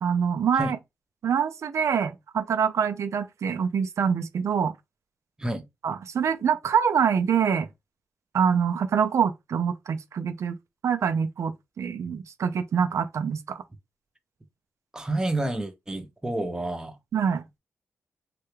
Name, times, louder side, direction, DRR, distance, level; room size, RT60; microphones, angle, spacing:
voice 1, 0.0-0.8 1.2-4.7 5.8-7.7 8.3-10.6 10.8-11.5 11.8-13.6 17.1-17.4, right 7 dB, 70° right, 0.4 m, -25 dB
voice 2, 14.9-17.0, right 1 dB, 15° right, 0.7 m, -29 dB
3.2 x 2.2 x 3.2 m
cardioid pair, 75°, 5 cm